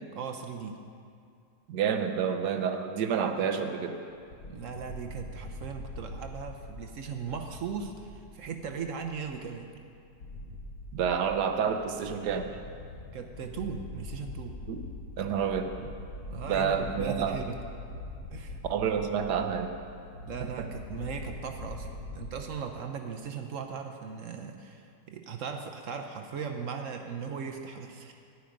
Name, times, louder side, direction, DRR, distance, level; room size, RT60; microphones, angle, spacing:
voice 1, 0.1-0.8 4.4-9.7 13.1-14.6 16.3-17.6 18.3-18.7 20.2-28.1, right 6 dB, 60° right, 4 dB, 0.9 m, -38 dB
voice 2, 1.7-4.0 10.9-12.5 14.7-14.8 15.2-15.7 16.5-17.4 18.7-19.7, right 7 dB, 80° right, 6 dB, 1.4 m, -29 dB
sound 1, 4.1-22.3, left 2 dB, 60° left, 1.2 m, -43 dB
10.5 x 9.3 x 5.1 m, 2.4 s
omnidirectional pair, 1.7 m